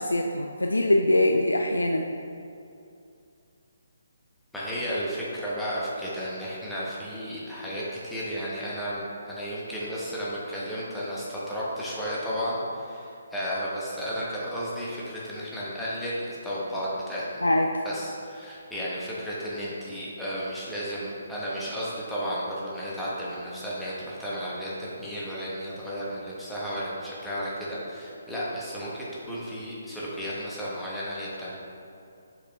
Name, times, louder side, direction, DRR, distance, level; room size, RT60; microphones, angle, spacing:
voice 1, 0.0-2.0 17.4-17.7, left 1 dB, 75° left, 3 dB, 0.4 m, -23 dB
voice 2, 4.5-17.2 17.8-31.6, equal, 5° left, -8 dB, 1.2 m, -33 dB
6.7 x 4.9 x 3.3 m, 2.5 s
figure-of-eight pair, 140°, 0 cm